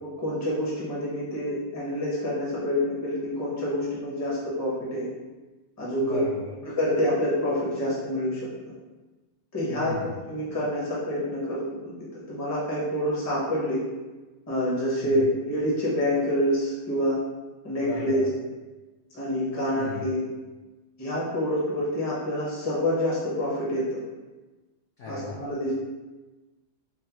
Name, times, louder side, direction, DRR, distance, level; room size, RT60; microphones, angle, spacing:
voice 1, 0.0-5.1 5.8-6.2 6.6-8.5 9.5-9.9 10.3-13.8 14.5-17.2 17.6-18.3 19.1-20.2 21.0-24.0 25.1-25.7, equal, 25° left, -7 dB, 0.4 m, -27 dB
voice 2, 6.0-6.5 9.7-10.2 15.0-15.3 17.8-18.3 19.8-20.1 25.0-25.4, left 4 dB, 75° left, -4 dB, 0.7 m, -37 dB
4.4 x 2.0 x 2.8 m, 1.2 s
omnidirectional pair, 1.9 m